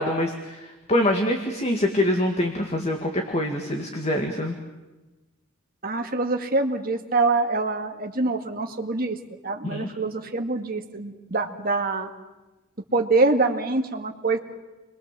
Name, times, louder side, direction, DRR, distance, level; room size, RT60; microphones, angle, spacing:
voice 1, 0.0-4.6 9.6-9.9, left 1 dB, 30° left, 3 dB, 2.1 m, -25 dB
voice 2, 5.8-9.2 9.4-12.1 12.9-14.4, right 3 dB, 45° right, 4 dB, 2.2 m, -25 dB
29.5 x 22.5 x 7.6 m, 1.1 s
head